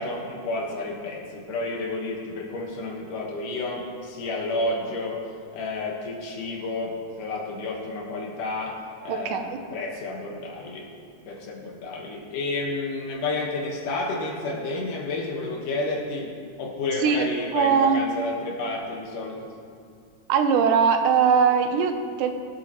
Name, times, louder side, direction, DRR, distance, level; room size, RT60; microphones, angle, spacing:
voice 1, 0.0-5.2 5.5-10.9 11.3-16.3 16.6-19.5, left 2 dB, 80° left, 0 dB, 3.0 m, -31 dB
voice 2, 9.1-9.6 17.0-17.3 17.5-18.0 20.3-22.3, right 6 dB, 85° right, 7 dB, 2.4 m, -21 dB
21.0 x 8.1 x 3.1 m, 2.3 s
omnidirectional pair, 3.6 m